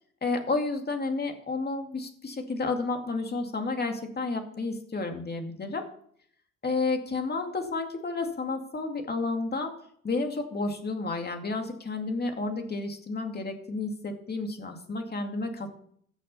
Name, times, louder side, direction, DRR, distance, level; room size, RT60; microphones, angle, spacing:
voice 1, 0.2-5.8 6.6-9.7 10.0-15.7, left 3 dB, 35° left, 4 dB, 2.3 m, -31 dB
15.0 x 6.4 x 5.6 m, 0.63 s
cardioid pair, 90°, 30 cm